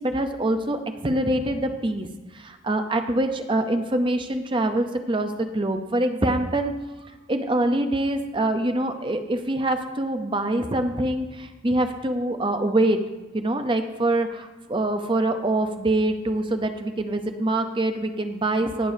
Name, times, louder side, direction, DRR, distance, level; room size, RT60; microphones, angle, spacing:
voice 1, 0.0-2.1 2.3-6.7 7.3-13.0 13.3-18.9, right 1 dB, 25° right, 7 dB, 0.7 m, -24 dB
18.5 x 6.9 x 2.7 m, 1.2 s
head